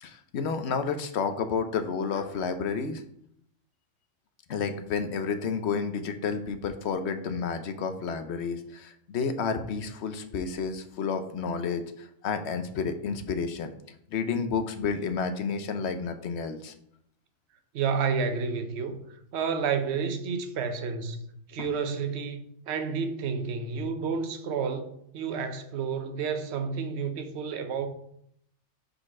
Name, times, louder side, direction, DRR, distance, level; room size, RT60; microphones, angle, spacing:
voice 1, 0.0-3.0 4.5-13.7 14.1-16.7 21.6-21.7, left 5 dB, 65° left, 0.9 m, -30 dB
voice 2, 17.7-19.0 19.3-21.2 21.5-22.4 22.7-27.9, right 5 dB, 65° right, 1.0 m, -30 dB
5.0 x 4.2 x 5.9 m
omnidirectional pair, 1.3 m